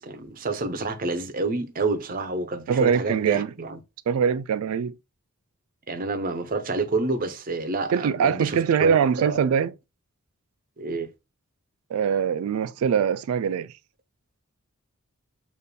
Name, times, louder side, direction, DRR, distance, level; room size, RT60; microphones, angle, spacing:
voice 1, 0.0-3.8 5.9-9.4 10.8-11.1, right 3 dB, 40° right, 0.6 m, -28 dB
voice 2, 2.7-3.5 4.1-4.9 7.9-9.7 11.9-13.7, right 7 dB, 75° right, 0.3 m, -23 dB
6.6 x 2.5 x 2.2 m
head